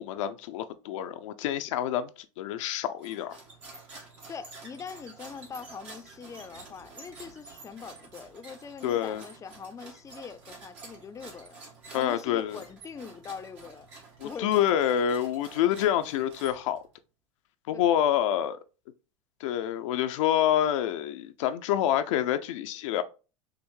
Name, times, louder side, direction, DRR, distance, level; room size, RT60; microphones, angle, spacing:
voice 1, 0.0-2.1 2.4-3.4 8.8-9.2 11.9-12.6 14.2-16.8 17.7-18.6 19.4-23.0, left 10 dB, 75° left, 0.4 m, -27 dB
sound 1, 3.0-16.9, right 3 dB, 70° right, 1.6 m, -49 dB
voice 2, 4.3-11.6 11.9-13.9 14.2-14.8 17.7-17.9, left 6 dB, 20° left, 0.4 m, -42 dB
5.6 x 2.0 x 3.1 m
hypercardioid pair, 85°, 16 cm